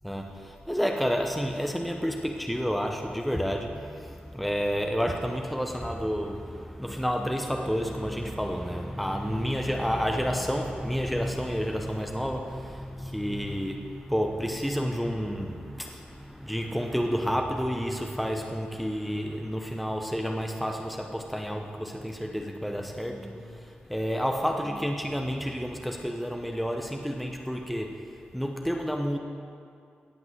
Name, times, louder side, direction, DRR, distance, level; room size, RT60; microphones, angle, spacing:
voice 1, 0.0-28.0 28.3-29.2, equal, ahead, 3 dB, 0.9 m, -30 dB
17.5 x 5.9 x 7.7 m, 2.4 s
cardioid pair, 75°, 4 cm